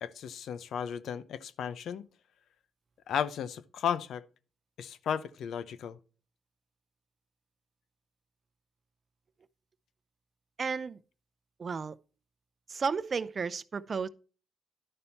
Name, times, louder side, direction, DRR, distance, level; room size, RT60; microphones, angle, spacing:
voice 1, 0.0-2.1 3.1-4.2 4.8-6.0, left 8 dB, 75° left, 0.7 m, -34 dB
voice 2, 10.6-11.0 11.6-12.0 12.7-14.1, right 5 dB, 45° right, 0.6 m, -33 dB
11.0 x 5.5 x 4.4 m
cardioid pair, 75°, 0 cm